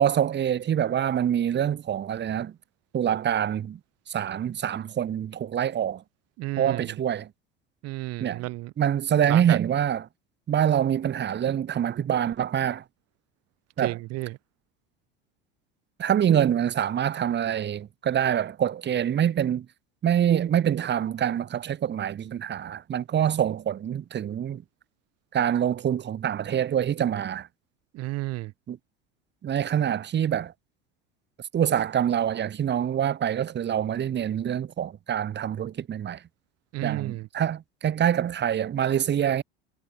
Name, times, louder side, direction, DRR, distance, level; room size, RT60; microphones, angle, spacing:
voice 1, 0.0-2.5 2.9-3.8 4.1-6.0 6.6-7.3 8.2-8.4 8.8-10.0 10.5-12.8 13.8-14.0 16.0-19.7 20.0-24.6 25.3-27.5 28.7-28.8 29.4-30.5 31.5-36.2 36.8-39.4, right 9 dB, 35° right, 2.2 m, -25 dB
voice 2, 6.4-6.9 7.8-8.7 9.3-9.6 13.8-14.4 27.9-28.5 36.7-37.3, right 19 dB, 55° right, 1.7 m, -32 dB
hypercardioid pair, 80°, 29 cm